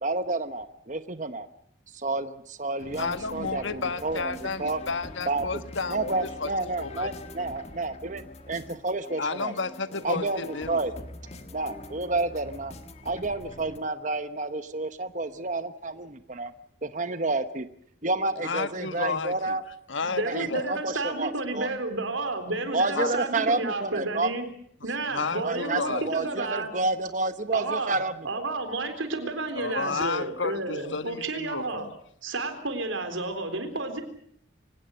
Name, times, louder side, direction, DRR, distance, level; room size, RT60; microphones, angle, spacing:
voice 1, 0.0-1.5 1.9-4.3 4.6-4.8 5.3-5.4 5.9-9.5 10.0-10.9 11.5-12.7 13.0-16.5 16.8-17.7 18.0-19.6 20.2-21.7 22.7-24.3 25.4-28.1, right 3 dB, 40° right, 10 dB, 1.0 m, -30 dB
sound 1, 2.8-13.8, left 1 dB, 35° left, 1.7 m, -44 dB
voice 2, 3.0-6.5 6.8-7.1 9.2-10.8 18.4-19.6 19.9-20.7 22.9-23.1 25.1-26.1 29.6-31.9, left 4 dB, 75° left, 11 dB, 1.3 m, -32 dB
voice 3, 20.0-24.5 24.8-26.7 27.5-28.0 28.2-31.8 32.2-34.0, right 2 dB, 90° right, 8 dB, 3.9 m, -31 dB
25.0 x 18.0 x 7.9 m, 0.65 s
head